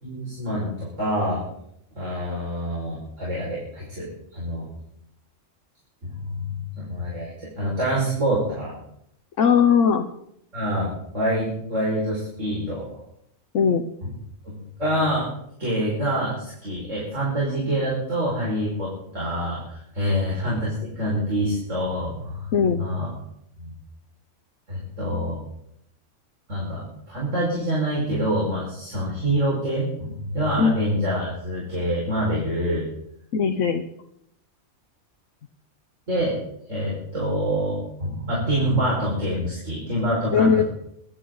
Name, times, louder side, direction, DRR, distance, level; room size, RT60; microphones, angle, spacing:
voice 1, 0.0-1.4 1.9-4.1 4.3-4.6 6.0-8.7 10.5-12.9 14.4-14.5 14.8-15.3 15.6-23.1 23.6-23.7 24.7-25.4 26.5-32.9 36.1-36.4 36.7-40.6, equal, 80° right, -6 dB, 5.8 m, -26 dB
voice 2, 9.4-10.1 13.5-13.8 22.5-22.8 30.6-30.7 33.3-33.8 40.3-40.6, left 6 dB, 75° left, 5 dB, 1.2 m, -19 dB
23.5 x 12.0 x 3.9 m, 0.75 s
omnidirectional pair, 1.3 m